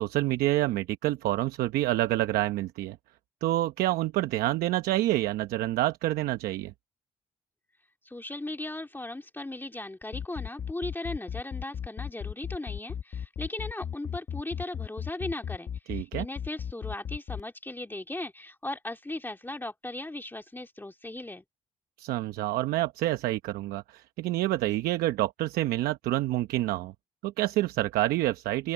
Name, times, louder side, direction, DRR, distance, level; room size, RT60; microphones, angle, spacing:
voice 1, 0.0-3.0 3.4-6.7 15.9-16.3 22.0-26.9 27.2-28.7, right 16 dB, 85° right, 0.9 m, -27 dB
voice 2, 8.0-21.4, left 2 dB, 15° left, 2.3 m, -37 dB
sound 1, 10.0-17.4, left 8 dB, 55° left, 1.1 m, -35 dB
open air
supercardioid pair, 60°, 15 cm